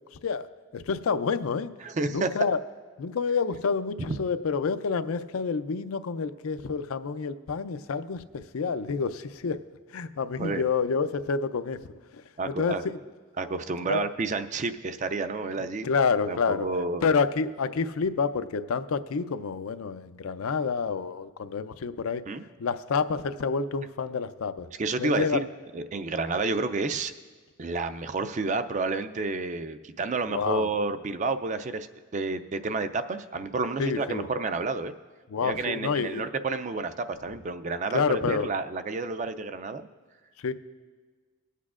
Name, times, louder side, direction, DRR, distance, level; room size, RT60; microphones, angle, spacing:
voice 1, 0.7-1.7 2.1-2.6 3.0-9.6 9.9-11.8 12.1-12.2 12.5-12.9 13.9-14.1 15.8-16.7 17.0-22.2 22.6-24.7 25.0-25.4 30.3-30.7 33.8-34.3 35.3-36.3 37.9-38.5 40.4-40.5, left 5 dB, 80° left, 11 dB, 0.4 m, -28 dB
voice 2, 1.8-2.3 10.4-10.6 12.4-12.8 13.4-15.9 16.3-17.0 22.3-22.4 24.8-25.5 25.7-27.1 27.6-31.9 32.1-34.9 35.4-39.8, right 3 dB, 35° right, 10 dB, 0.3 m, -30 dB
22.0 x 8.3 x 2.4 m, 1.4 s
head